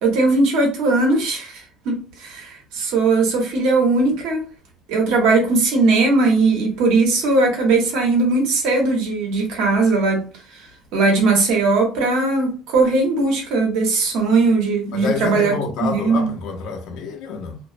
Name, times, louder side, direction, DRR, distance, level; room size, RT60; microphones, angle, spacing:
voice 1, 0.0-4.5 4.9-10.3 10.9-15.5 15.9-16.3, right 3 dB, 75° right, 1.0 m, -19 dB
voice 2, 14.9-17.6, left 5 dB, 60° left, 0.6 m, -28 dB
2.4 x 2.0 x 2.5 m
cardioid pair, 165°, 0 cm